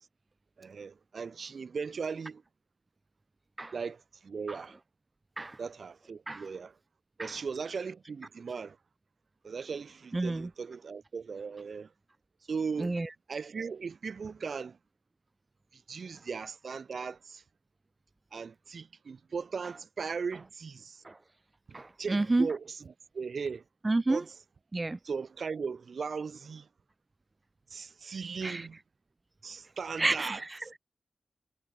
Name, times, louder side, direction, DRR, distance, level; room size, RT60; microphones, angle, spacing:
voice 1, 0.6-2.4 3.7-4.8 5.6-6.7 7.2-8.8 9.4-11.9 12.5-13.0 13.3-14.8 15.7-17.4 18.3-21.0 21.7-23.6 24.1-24.3 25.0-26.7 27.7-28.8 29.4-30.4, right 5 dB, 70° right, 7.3 m, -38 dB
voice 2, 10.1-10.5 12.8-13.1 21.0-21.2 21.7-22.5 23.8-24.2 24.7-25.0 28.4-28.7 30.0-30.8, right 2 dB, 30° right, 3.9 m, -30 dB
wide cardioid pair, 80°, 0 cm